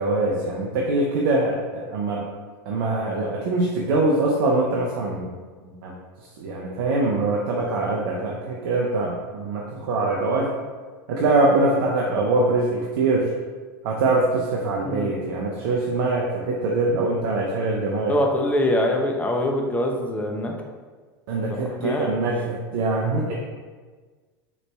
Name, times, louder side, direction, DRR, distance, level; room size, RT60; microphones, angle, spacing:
voice 1, 0.0-2.2 2.7-5.4 5.8-5.9 6.4-10.5 11.1-13.3 13.8-18.1 21.3-23.3, right 2 dB, 65° right, -2 dB, 0.5 m, -23 dB
voice 2, 18.1-20.5 21.5-22.1, left 1 dB, 10° left, 1 dB, 0.5 m, -24 dB
3.9 x 3.0 x 2.3 m, 1.4 s
hypercardioid pair, 90°, 12 cm